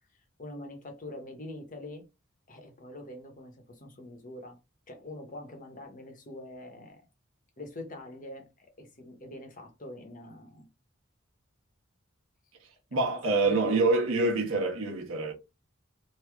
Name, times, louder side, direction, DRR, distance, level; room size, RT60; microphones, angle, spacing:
voice 1, 0.4-2.0 2.5-4.6 4.9-7.1 7.6-10.7 12.9-13.8, left 1 dB, 40° left, 0.9 m, -44 dB
voice 2, 12.9-15.3, right 3 dB, 80° right, 1.2 m, -26 dB
3.1 x 2.8 x 3.5 m
head